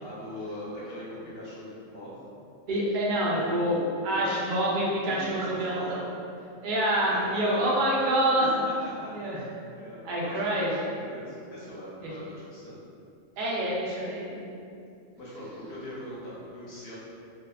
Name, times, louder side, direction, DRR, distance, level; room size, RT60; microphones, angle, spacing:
voice 1, 0.0-2.2 3.3-4.7 5.1-6.0 7.0-7.7 8.7-9.1 9.7-12.8 15.2-17.0, equal, 55° left, -8 dB, 0.9 m, -41 dB
voice 2, 2.7-3.8 4.0-6.0 6.6-8.7 9.1-9.4 10.0-10.7 12.0-12.1 13.4-14.5, right 1 dB, 60° right, -5 dB, 0.5 m, -26 dB
2.7 x 2.3 x 2.3 m, 2.5 s
omnidirectional pair, 1.3 m